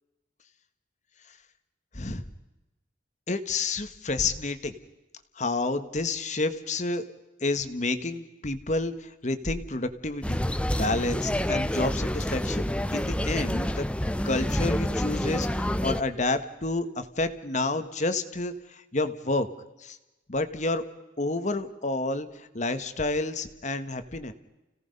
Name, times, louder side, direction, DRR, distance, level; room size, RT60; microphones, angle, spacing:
voice 1, 3.3-4.8 5.4-7.0 7.4-10.4 10.8-13.8 14.2-19.5 19.8-20.0 20.3-20.8 21.2-24.3, left 2 dB, 40° left, 10 dB, 1.4 m, -29 dB
sound 1, 10.2-16.0, left 1 dB, 5° left, 0.6 m, -28 dB
30.0 x 17.0 x 5.4 m, 1.0 s
head